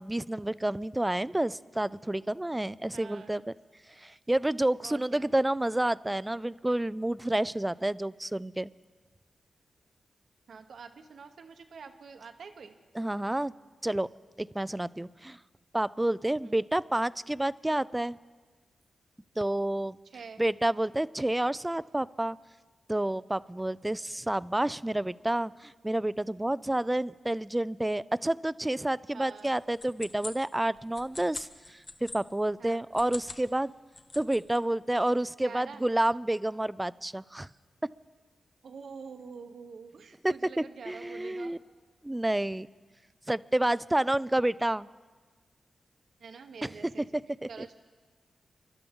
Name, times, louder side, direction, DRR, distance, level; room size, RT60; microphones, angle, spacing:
voice 1, 0.0-3.4 4.0-8.7 13.0-13.5 13.8-14.1 14.4-15.4 15.7-18.2 19.4-20.0 20.4-22.4 22.9-33.7 34.2-37.5 37.8-37.9 40.2-41.6 42.0-42.7 43.3-44.9 46.6-47.5, right 1 dB, 15° right, 19 dB, 0.3 m, -29 dB
voice 2, 2.9-3.4 4.8-5.3 10.5-12.7 16.4-16.5 20.0-20.4 29.1-29.5 32.6-32.8 35.4-35.8 38.6-41.6 46.2-47.1 47.5-47.7, right 5 dB, 75° right, 6 dB, 1.0 m, -46 dB
sound 1, 29.4-32.2 32.8-33.5 33.8-34.6, left 2 dB, 45° left, 1.3 m, -43 dB
29.0 x 12.0 x 3.7 m, 1.4 s
cardioid pair, 65°, 0 cm